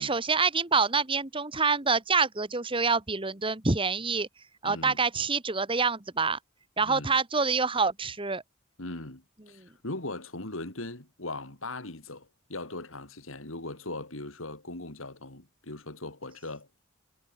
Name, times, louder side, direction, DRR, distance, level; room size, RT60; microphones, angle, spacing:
voice 1, 0.0-4.3 4.6-6.4 6.8-8.4 9.6-9.7, right 4 dB, 25° right, 1.7 m, -26 dB
voice 2, 4.6-5.0 6.8-7.1 8.8-16.7, left 2 dB, 85° left, 4.0 m, -39 dB
head